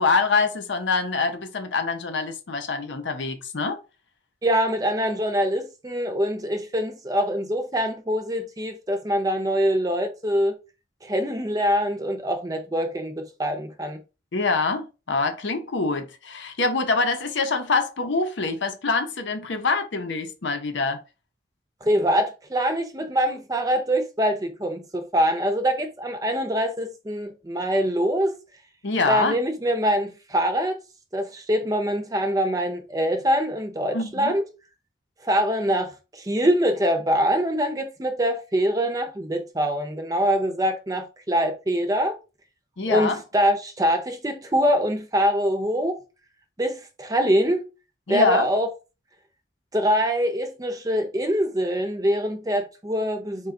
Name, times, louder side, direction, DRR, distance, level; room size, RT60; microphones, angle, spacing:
voice 1, 0.0-3.8 14.3-21.0 28.8-29.4 33.9-34.3 42.8-43.2 48.1-48.5, left 4 dB, 80° left, 0.7 m, -25 dB
voice 2, 4.4-10.6 11.0-14.0 21.8-28.4 29.1-30.8 31.1-34.4 35.2-42.1 42.9-46.0 46.6-47.6 48.1-48.7 49.7-53.5, equal, 20° right, 0.5 m, -24 dB
4.3 x 2.3 x 3.7 m
head